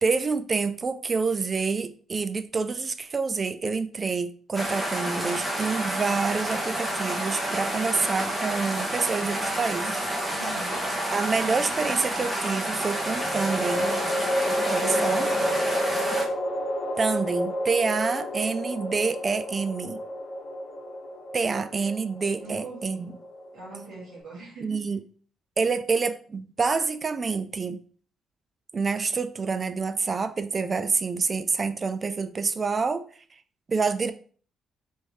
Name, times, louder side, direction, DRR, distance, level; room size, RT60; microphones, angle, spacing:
voice 1, 0.0-10.0 11.1-14.0 14.7-15.3 17.0-20.0 21.3-23.1 24.6-25.0 25.6-27.8 28.7-33.1 33.7-34.1, right 4 dB, 35° right, 0.3 m, -27 dB
sound 1, 4.5-16.2, right 1 dB, 10° right, 0.9 m, -29 dB
sound 2, 9.8-10.6 12.9-24.2, equal, 60° left, 0.9 m, -30 dB
voice 2, 10.3-10.9 15.1-15.7 22.4-23.1 23.5-24.8, right 2 dB, 75° right, 1.5 m, -41 dB
3.5 x 2.7 x 3.0 m
cardioid pair, 90°, 0 cm